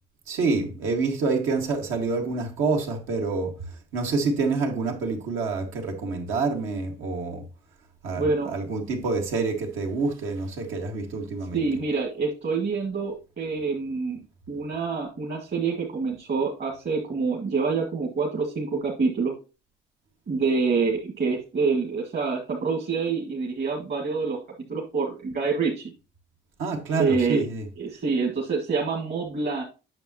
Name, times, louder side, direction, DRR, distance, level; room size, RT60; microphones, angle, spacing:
voice 1, 0.3-3.5 3.9-7.4 8.0-11.6 26.6-27.6, right 4 dB, 85° right, 1.8 m, -27 dB
voice 2, 8.2-8.5 11.5-14.2 14.5-19.3 20.3-24.4 24.7-25.9 27.0-27.4 27.8-29.6, right 4 dB, 55° right, 1.9 m, -26 dB
8.8 x 6.4 x 2.9 m
cardioid pair, 90°, 20 cm